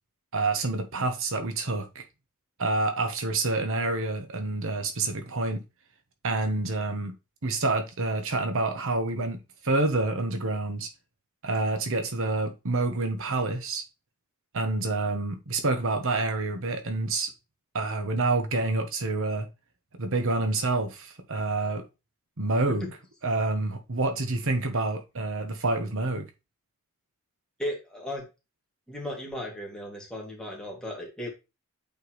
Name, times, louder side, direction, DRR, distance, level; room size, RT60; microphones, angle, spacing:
voice 1, 0.3-2.0 2.6-5.6 6.2-7.1 7.4-9.4 9.6-10.9 11.4-13.8 14.5-17.3 17.7-19.5 20.0-21.8 22.4-22.9 23.2-26.3, right 2 dB, 65° right, 1.2 m, -28 dB
voice 2, 27.6-28.3 28.9-31.3, left 1 dB, 5° left, 2.6 m, -36 dB
8.4 x 4.6 x 3.2 m
head